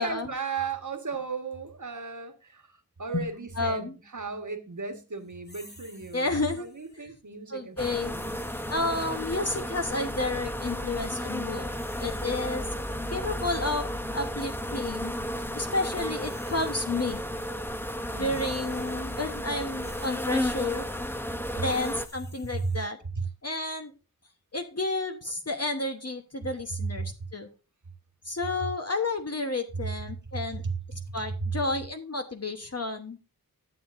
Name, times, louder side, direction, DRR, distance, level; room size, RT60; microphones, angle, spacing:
voice 1, 0.0-8.5 18.1-18.4 22.6-22.8 23.1-23.2 30.6-30.7 31.4-31.5, right 4 dB, 55° right, 1.5 m, -35 dB
voice 2, 3.6-3.9 6.1-6.7 7.0-7.1 7.5-8.1 8.7-11.7 12.0-12.6 13.1-15.1 15.5-17.2 18.2-20.9 21.6-23.0 23.4-23.9 24.5-27.5 28.2-30.6 31.1-33.2, left 2 dB, 40° left, 1.1 m, -31 dB
sound 1, 5.4-7.1 8.1-9.9 11.4-13.8 14.5-14.8 15.9-17.4 17.7-22.9, left 1 dB, 25° left, 2.1 m, -54 dB
sound 2, 7.8-22.1, equal, 5° left, 0.8 m, -33 dB
12.0 x 7.4 x 2.6 m
wide cardioid pair, 40°, 37 cm